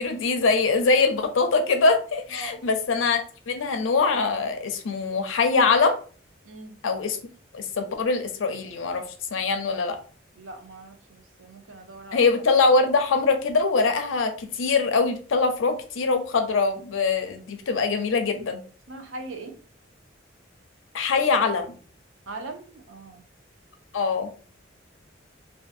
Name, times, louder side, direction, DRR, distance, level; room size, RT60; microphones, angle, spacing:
voice 1, 0.0-3.2 3.5-6.0 6.8-7.2 7.5-10.0 12.1-18.6 20.9-21.7 23.9-24.3, left 4 dB, 80° left, 0.5 m, -23 dB
voice 2, 2.3-2.6 6.4-6.8 10.4-12.2 18.9-19.6 22.3-23.3, right 2 dB, 85° right, 0.6 m, -40 dB
2.6 x 2.5 x 2.4 m
head